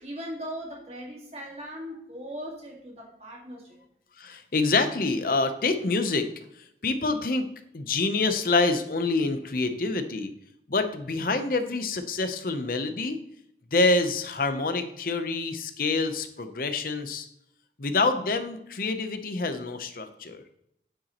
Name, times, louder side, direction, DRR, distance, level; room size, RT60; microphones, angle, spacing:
voice 1, 0.0-3.8, equal, 35° right, -2 dB, 1.8 m, -39 dB
voice 2, 4.2-6.3 6.8-7.5 7.7-10.3 10.7-13.2 13.7-17.3 17.8-20.4, left 3 dB, 50° left, 9 dB, 0.8 m, -26 dB
9.4 x 8.0 x 3.0 m, 0.76 s
head